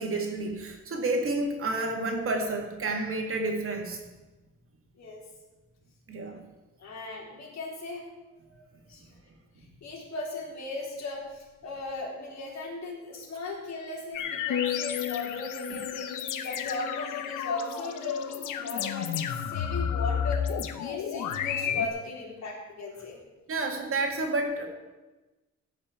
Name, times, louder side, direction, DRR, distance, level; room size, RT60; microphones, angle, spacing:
voice 1, 0.0-4.0 6.1-6.4 23.5-24.7, right 2 dB, 45° right, 3 dB, 2.1 m, -30 dB
voice 2, 6.8-9.2 9.6-23.2, left 3 dB, 60° left, -2 dB, 3.9 m, -38 dB
sound 1, 14.1-21.9, left 8 dB, 85° left, 1.0 m, -31 dB
15.0 x 5.8 x 8.2 m, 1.2 s
cardioid pair, 155°, 30 cm